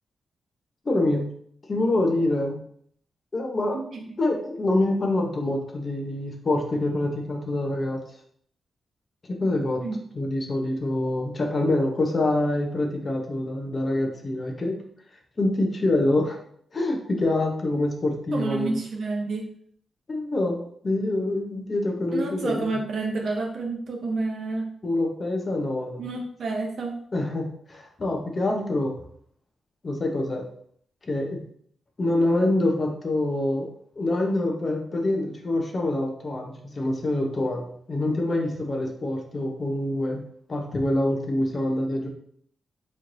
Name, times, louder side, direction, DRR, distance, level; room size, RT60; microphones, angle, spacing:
voice 1, 0.9-1.3 1.7-2.6 3.3-3.8 4.2-8.0 9.3-9.8 10.1-14.7 15.4-16.4 16.7-18.8 20.1-22.6 24.8-26.0 27.1-28.9 29.8-30.5 31.1-31.4 32.0-33.7 34.0-40.2 40.5-42.1, left 1 dB, 35° left, 2 dB, 0.7 m, -25 dB
voice 2, 18.3-19.5 22.1-24.7 26.0-27.0, right 3 dB, 65° right, 1 dB, 0.8 m, -29 dB
4.3 x 3.0 x 2.6 m, 0.63 s
cardioid pair, 105°, 0 cm